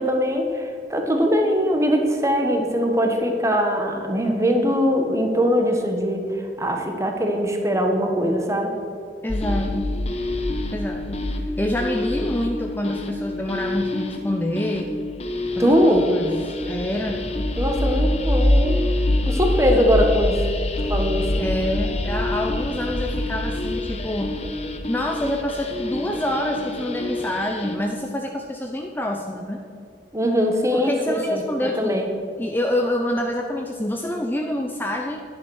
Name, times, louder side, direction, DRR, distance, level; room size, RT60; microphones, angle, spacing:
voice 1, 0.0-6.3 6.6-8.7 15.6-16.0 17.6-18.8 19.3-20.4 20.9-21.4 30.1-32.1, equal, 15° right, 3 dB, 1.3 m, -21 dB
voice 2, 9.2-9.9 10.7-11.3 11.6-14.9 15.6-17.2 21.4-24.4 24.9-29.7 30.7-32.0 32.4-35.2, left 1 dB, 10° left, 2 dB, 0.6 m, -27 dB
sound 1, 9.3-27.8, left 1 dB, 35° left, 1.0 m, -25 dB
11.5 x 10.0 x 6.3 m, 2.4 s
head